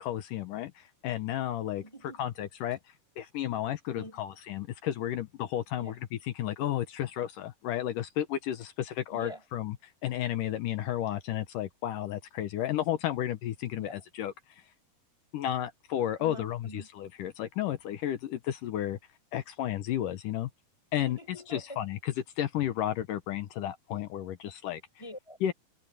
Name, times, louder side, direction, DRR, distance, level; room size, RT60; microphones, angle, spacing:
voice 1, 0.0-1.8 2.2-2.8 3.2-9.8 10.0-14.3 15.3-19.0 19.3-20.5 20.9-21.2 21.5-24.8 25.4-25.5, left 11 dB, 70° left, 2.3 m, -32 dB
voice 2, 1.8-2.2 3.9-4.2 5.8-6.0 9.1-9.4 13.7-14.0 16.2-16.9 21.0-21.8 25.0-25.4, equal, 5° left, 4.4 m, -45 dB
omnidirectional pair, 4.4 m